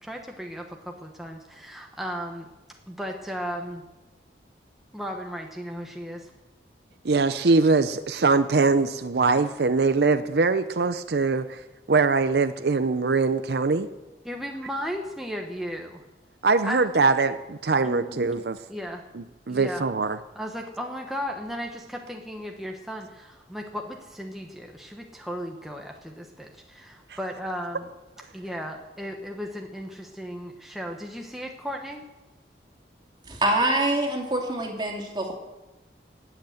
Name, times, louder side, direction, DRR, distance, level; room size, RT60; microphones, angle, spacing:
voice 1, 0.0-2.5 2.9-3.8 4.9-6.3 14.2-16.0 16.6-16.9 17.8-18.2 18.7-19.0 19.5-19.9 20.3-27.9 28.3-32.0, equal, ahead, 1 dB, 1.0 m, -35 dB
voice 2, 7.0-11.6 11.9-13.9 16.4-18.6 19.1-20.2 27.1-27.2, right 4 dB, 70° right, 11 dB, 0.6 m, -22 dB
voice 3, 33.3-35.3, right 1 dB, 25° right, 1 dB, 2.6 m, -25 dB
19.0 x 8.1 x 7.8 m, 1.1 s
head